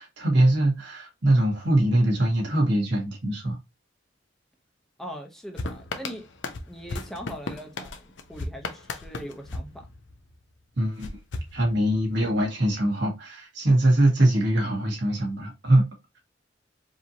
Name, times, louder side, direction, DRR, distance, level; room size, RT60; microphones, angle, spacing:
voice 1, 0.0-3.6 10.8-11.1 11.5-15.8, right 1 dB, 65° right, 1.9 m, -22 dB
voice 2, 5.0-6.3 6.7-9.9, equal, ahead, 0.8 m, -40 dB
sound 1, 5.6-10.4 11.0-12.2, left 3 dB, 70° left, 0.7 m, -36 dB
4.8 x 2.8 x 2.8 m
head